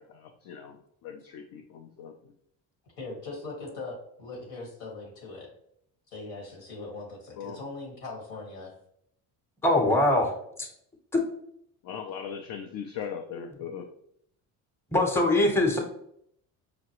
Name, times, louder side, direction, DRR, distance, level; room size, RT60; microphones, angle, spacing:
voice 1, 0.0-2.1 7.4-7.6 11.8-13.9, left 7 dB, 60° left, 3 dB, 0.6 m, -39 dB
voice 2, 3.0-5.5 6.1-8.7, left 3 dB, 85° left, -1 dB, 1.5 m, -40 dB
voice 3, 9.6-10.3 10.6-10.7 11.1-11.2 14.9-15.8, left 1 dB, 5° left, 2 dB, 0.8 m, -22 dB
5.0 x 2.2 x 2.9 m, 0.71 s
supercardioid pair, 80°, 40 cm